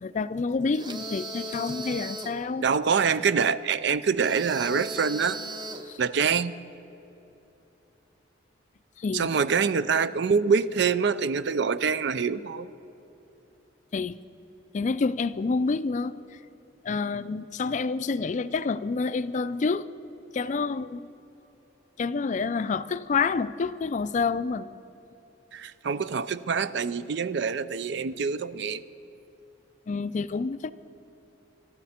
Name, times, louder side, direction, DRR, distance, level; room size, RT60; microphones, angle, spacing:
voice 1, 0.0-2.7 5.9-6.0 9.0-9.3 13.9-14.1 14.7-16.2 16.8-19.9 20.3-21.0 22.0-24.7 29.9-30.7, left 4 dB, 40° left, 0.4 m, -28 dB
sound 1, 0.7-2.4 4.2-6.0, right 1 dB, 25° right, 0.8 m, -37 dB
voice 2, 2.6-5.4 6.0-6.5 9.1-12.7 25.5-28.8, right 6 dB, 65° right, 0.5 m, -25 dB
25.0 x 12.0 x 4.3 m
head